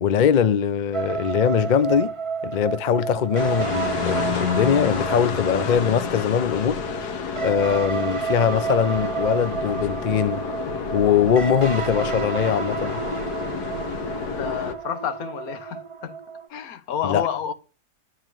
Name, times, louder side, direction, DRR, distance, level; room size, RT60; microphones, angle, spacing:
voice 1, 0.0-2.1 2.4-6.8 7.4-10.4 10.9-13.0 17.0-17.2, left 8 dB, 45° left, 0.6 m, -21 dB
sound 1, 0.9-16.5, right 6 dB, 25° right, 0.8 m, -31 dB
sound 2, 3.4-14.7, left 7 dB, 85° left, 1.6 m, -30 dB
voice 2, 14.2-16.2 16.5-17.5, left 8 dB, 65° left, 1.5 m, -30 dB
11.0 x 4.8 x 7.7 m
omnidirectional pair, 1.7 m